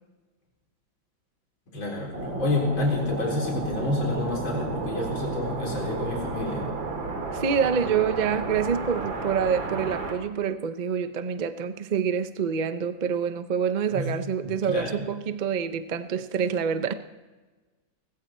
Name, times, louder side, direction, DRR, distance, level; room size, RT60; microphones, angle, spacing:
voice 1, 1.7-6.6 13.9-14.1 14.4-15.0, left 2 dB, 85° left, -2 dB, 4.8 m, -28 dB
sound 1, 2.1-10.1, right 3 dB, 85° right, 2.8 m, -32 dB
voice 2, 7.3-16.9, right 7 dB, 55° right, 10 dB, 0.4 m, -27 dB
19.5 x 16.5 x 4.4 m, 1.2 s
omnidirectional pair, 2.1 m